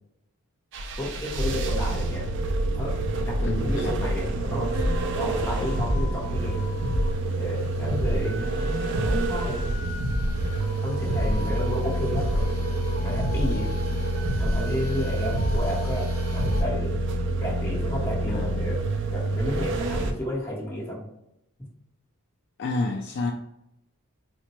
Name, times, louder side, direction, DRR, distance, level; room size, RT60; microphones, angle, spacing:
sound 1, 0.7-20.1, right 2 dB, 55° right, 0.4 m, -28 dB
voice 1, 1.0-2.3 2.7-6.6 7.4-8.4 9.0-9.6 10.8-12.4 13.0-13.7 14.4-17.0 17.4-18.8 19.1-21.1, left 1 dB, 10° left, -3 dB, 0.9 m, -32 dB
voice 2, 3.4-3.9 18.3-18.6 22.6-23.3, left 3 dB, 50° left, 3 dB, 0.3 m, -29 dB
sound 2, 4.7-16.6, equal, 70° right, 0.9 m, -31 dB
3.9 x 2.1 x 2.9 m, 0.82 s
head